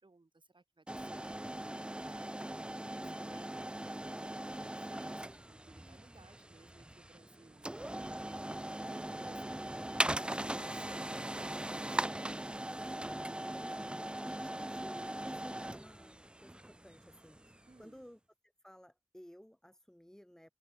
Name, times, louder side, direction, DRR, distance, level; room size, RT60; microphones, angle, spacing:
voice 1, 0.0-3.8 4.0-12.2 17.7-18.1, right 3 dB, 55° right, 4.2 m, -62 dB
sound 1, 0.9-17.7, right 1 dB, 10° right, 0.3 m, -40 dB
voice 2, 3.0-3.5 13.0-18.2 18.6-20.5, equal, 5° left, 1.7 m, -55 dB
open air
wide cardioid pair, 55°, 10 cm